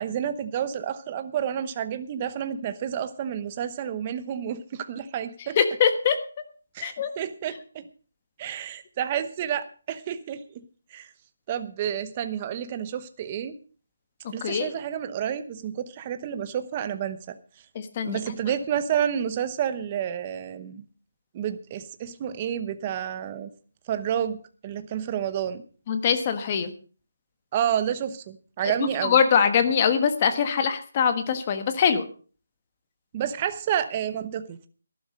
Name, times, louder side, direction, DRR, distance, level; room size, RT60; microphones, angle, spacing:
voice 1, 0.0-5.6 6.7-7.8 8.4-10.6 10.9-11.1 11.5-13.6 14.3-17.4 18.0-20.8 21.3-23.5 23.9-24.4 24.6-25.6 27.5-29.2 33.1-34.7, right 9 dB, 20° right, 11 dB, 0.9 m, -30 dB
voice 2, 5.6-6.2 6.8-7.1 14.2-14.7 17.7-18.2 25.9-26.7 28.8-32.1, left 7 dB, 25° left, 9 dB, 1.4 m, -23 dB
14.0 x 12.0 x 5.2 m, 0.39 s
hypercardioid pair, 175°, 0 cm